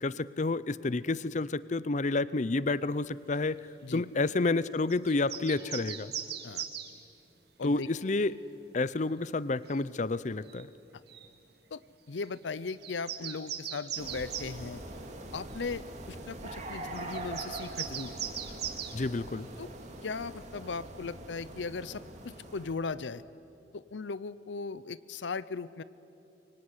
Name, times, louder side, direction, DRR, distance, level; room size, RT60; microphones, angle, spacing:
voice 1, 0.0-3.6 3.9-6.1 7.6-8.3 8.7-10.7 18.9-19.5, left 3 dB, 40° left, 18 dB, 0.6 m, -30 dB
sound 1, 4.9-6.9 9.7-9.8 10.5-10.6 11.1-11.3 12.2-12.3 12.7-14.5 15.6-15.7 16.9-19.0, right 9 dB, 60° right, 2.0 m, -39 dB
sound 2, 5.5-6.4 7.6-8.4 9.6-10.4, left 1 dB, 85° right, 5.3 m, -62 dB
voice 2, 11.7-14.8 15.3-18.1 19.6-19.7 20.0-23.2 23.7-25.8, left 4 dB, 90° left, 17 dB, 0.6 m, -38 dB
sound 3, 14.0-22.8, right 2 dB, 40° right, 2.5 m, -43 dB
24.0 x 24.0 x 9.8 m, 2.8 s
head